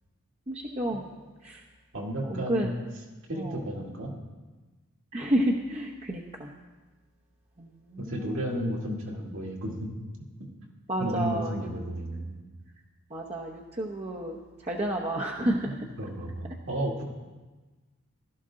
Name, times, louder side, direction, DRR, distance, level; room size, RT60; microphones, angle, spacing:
voice 1, 0.5-1.1 1.4-1.6 2.2-2.7 3.3-3.6 5.1-6.5 7.6-8.4 10.9-11.6 13.1-15.9, right 1 dB, 30° right, -1 dB, 0.9 m, -31 dB
voice 2, 1.9-2.7 3.3-4.1 8.0-9.9 11.0-12.3 16.0-17.0, equal, 60° right, -1 dB, 2.3 m, -32 dB
16.0 x 13.0 x 3.8 m, 1.2 s
head